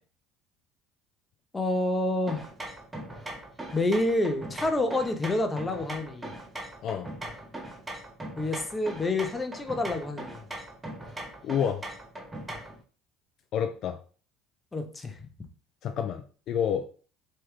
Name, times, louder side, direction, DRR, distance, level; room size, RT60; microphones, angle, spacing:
voice 1, 1.5-2.5 3.7-6.3 8.4-10.4 14.7-15.2, left 2 dB, 20° left, 6 dB, 0.6 m, -28 dB
sound 1, 2.3-12.8, right 1 dB, 15° right, 0.7 m, -40 dB
voice 2, 11.4-11.8 13.5-14.0 15.8-16.9, left 8 dB, 55° left, 7 dB, 0.3 m, -29 dB
3.2 x 2.3 x 3.1 m, 0.39 s
supercardioid pair, 90°, 0 cm